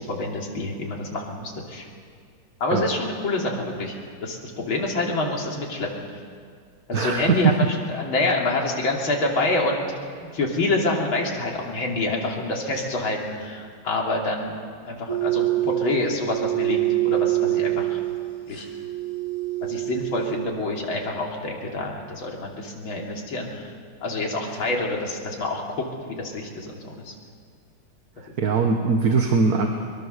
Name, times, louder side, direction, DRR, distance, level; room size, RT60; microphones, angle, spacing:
voice 1, 0.0-1.9 2.6-6.2 6.9-9.8 10.3-14.6 14.9-18.0 18.5-18.7 19.7-23.7 24.0-27.1, left 2 dB, 65° left, -1 dB, 3.7 m, -27 dB
voice 2, 6.9-7.5 28.4-29.7, right 4 dB, 50° right, 3 dB, 1.6 m, -21 dB
sound 1, 15.1-20.4, right 17 dB, 80° left, 3.7 m, -25 dB
23.0 x 22.5 x 6.7 m, 2.1 s
omnidirectional pair, 2.4 m